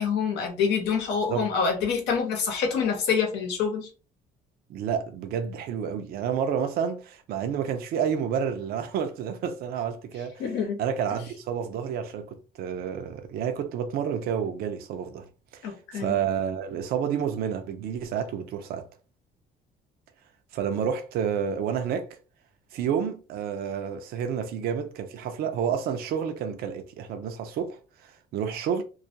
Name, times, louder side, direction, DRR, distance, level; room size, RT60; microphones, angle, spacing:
voice 1, 0.0-3.9 10.4-10.8 15.6-16.1, left 6 dB, 85° left, 0.9 m, -26 dB
voice 2, 4.7-10.4 10.8-15.2 15.5-18.9 20.5-22.1 22.7-28.8, right 7 dB, 65° right, 0.4 m, -30 dB
2.3 x 2.2 x 2.7 m
cardioid pair, 110°, 17 cm